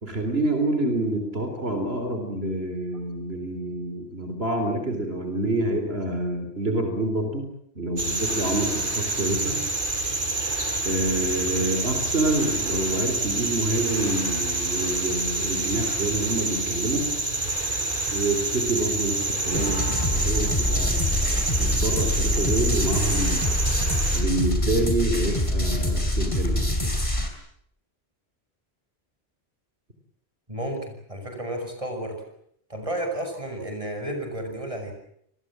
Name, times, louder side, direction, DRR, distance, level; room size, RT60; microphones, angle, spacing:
voice 1, 0.0-7.5 7.8-9.6 10.8-17.1 18.1-23.5 24.1-26.9, right 1 dB, 70° right, 5 dB, 4.1 m, -27 dB
sound 1, 8.0-24.2, right 2 dB, 55° right, 6.2 m, -27 dB
sound 2, 19.5-27.3, left 1 dB, 30° left, 4.4 m, -25 dB
voice 2, 30.5-32.2 32.7-34.9, right 1 dB, 30° right, 4 dB, 6.8 m, -32 dB
29.5 x 21.0 x 7.6 m, 0.70 s
omnidirectional pair, 1.1 m